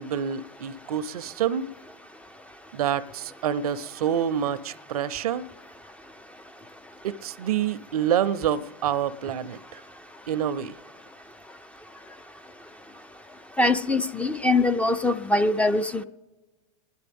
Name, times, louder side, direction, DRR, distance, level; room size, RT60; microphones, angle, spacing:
voice 1, 0.0-1.7 2.7-5.4 7.0-9.8 10.3-10.7, right 9 dB, 80° right, 0.5 m, -27 dB
voice 2, 13.6-16.0, left 2 dB, 5° left, 0.3 m, -23 dB
28.0 x 10.0 x 3.5 m
hypercardioid pair, 115°, 19 cm